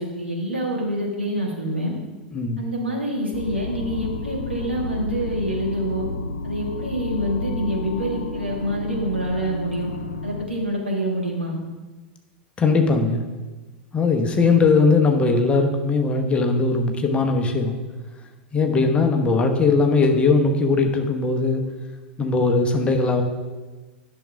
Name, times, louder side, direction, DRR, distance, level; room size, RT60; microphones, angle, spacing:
voice 1, 0.0-2.0 2.6-6.1 6.4-9.9 10.2-11.6, right 1 dB, 85° right, -2 dB, 1.8 m, -26 dB
voice 2, 2.3-2.6 12.6-13.2 13.9-17.8 18.5-21.6 22.2-23.2, left 3 dB, 20° left, 4 dB, 1.0 m, -19 dB
sound 1, 3.3-10.5, left 3 dB, 70° left, 0.5 m, -31 dB
10.5 x 6.4 x 3.5 m, 1.2 s
figure-of-eight pair, 90°, 6 cm